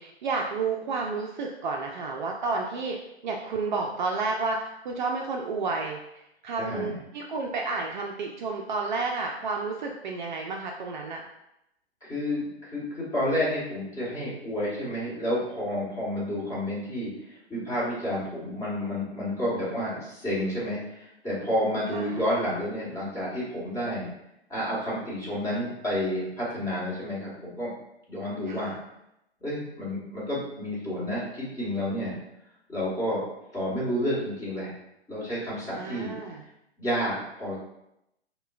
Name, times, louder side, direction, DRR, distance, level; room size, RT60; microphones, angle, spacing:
voice 1, 0.0-3.0 3.2-11.2 21.9-22.2 28.5-28.8 35.7-36.4, right 4 dB, 45° right, 1 dB, 0.4 m, -31 dB
voice 2, 6.6-6.9 12.0-24.1 24.5-27.7 28.1-28.7 29.4-32.1 32.7-33.2 33.5-34.7 35.1-36.1 36.8-37.6, equal, 10° left, -8 dB, 1.3 m, -30 dB
5.4 x 2.2 x 2.3 m, 0.84 s
hypercardioid pair, 130°, 33 cm